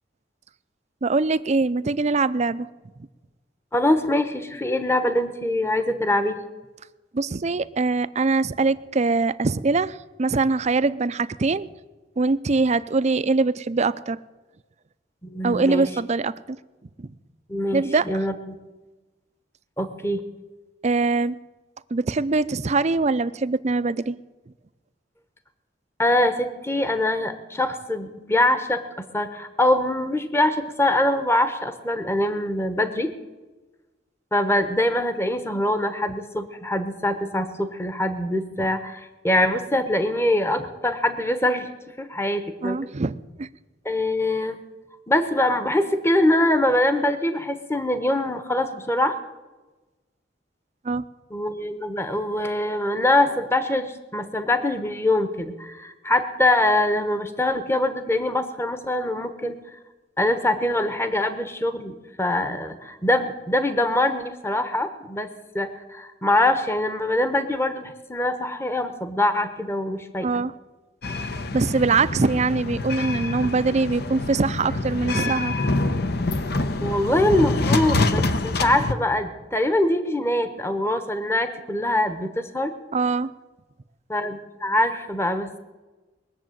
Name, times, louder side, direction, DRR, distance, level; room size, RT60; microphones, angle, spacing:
voice 1, 1.0-2.7 7.1-11.7 12.2-14.2 15.4-16.6 17.0-17.1 17.7-18.1 20.8-21.4 21.9-24.2 38.6-38.7 42.6-43.5 50.8-51.0 70.2-70.5 71.5-75.5 82.9-83.3, right 3 dB, 40° right, 15 dB, 0.5 m, -23 dB
voice 2, 3.7-6.4 15.2-15.9 17.5-18.6 19.8-20.2 26.0-33.1 34.3-41.7 42.0-42.9 43.8-44.6 45.1-49.2 51.3-59.6 60.2-70.4 76.8-82.7 84.1-85.5, left 1 dB, 15° left, 9 dB, 1.0 m, -23 dB
sound 1, 71.0-78.9, left 2 dB, 60° left, 1.0 m, -26 dB
21.5 x 7.4 x 9.1 m, 1.2 s
head